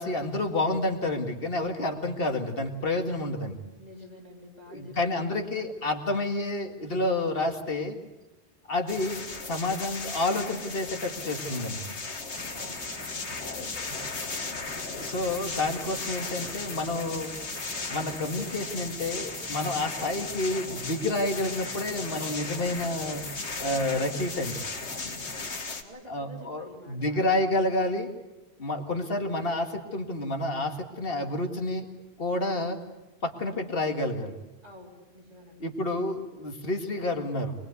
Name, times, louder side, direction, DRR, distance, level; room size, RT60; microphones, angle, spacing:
voice 1, 0.0-3.6 4.7-8.0 8.7-11.9 13.5-14.0 14.6-17.3 17.9-23.2 23.6-24.6 26.1-28.1 28.6-31.9 32.2-32.8 33.2-34.3 35.6-37.5, left 2 dB, 60° left, 4 dB, 2.2 m, -29 dB
voice 2, 3.8-5.9 12.5-13.6 25.0-27.2 34.6-35.6, left 1 dB, 35° right, -1 dB, 4.1 m, -49 dB
sound 1, 8.9-25.8, left 4 dB, 85° left, 2.0 m, -36 dB
sound 2, 12.3-25.6, left 1 dB, 10° left, 1.5 m, -44 dB
23.5 x 21.5 x 8.3 m, 1.0 s
omnidirectional pair, 1.1 m